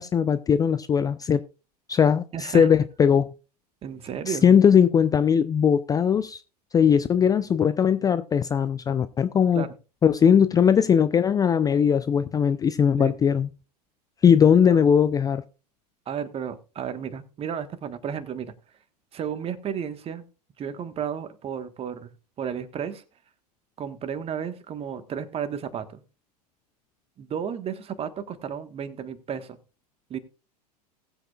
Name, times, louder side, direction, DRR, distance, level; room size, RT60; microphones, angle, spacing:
voice 1, 0.0-1.4 1.9-3.3 4.3-6.4 6.7-9.7 10.0-13.5 14.2-15.4, left 7 dB, 15° left, 0.5 m, -20 dB
voice 2, 2.3-2.7 3.8-4.6 9.5-9.7 13.0-13.1 16.1-18.5 19.1-20.2 20.6-22.1 22.4-23.0 23.8-26.0 27.2-29.6 30.1-30.2, right 8 dB, 30° right, 1.4 m, -33 dB
19.5 x 7.9 x 2.4 m
figure-of-eight pair, 90°, 21 cm